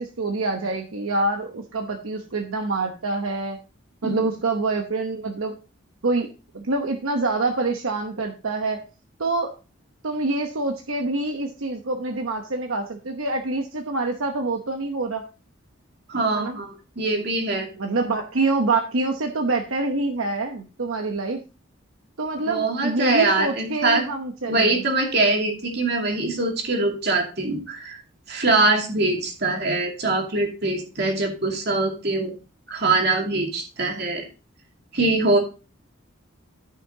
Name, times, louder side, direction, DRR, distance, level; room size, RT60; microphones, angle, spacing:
voice 1, 0.0-3.6 4.0-5.6 6.0-6.3 6.5-8.8 9.2-9.5 10.0-15.2 16.3-16.6 17.7-21.4 22.2-24.8, right 3 dB, 80° right, 3 dB, 1.0 m, -26 dB
voice 2, 16.1-17.7 22.5-24.0 24.5-28.0 28.3-32.3 32.7-34.2 34.9-35.4, right 2 dB, 50° right, 1 dB, 2.5 m, -23 dB
13.5 x 5.8 x 2.8 m, 0.33 s
head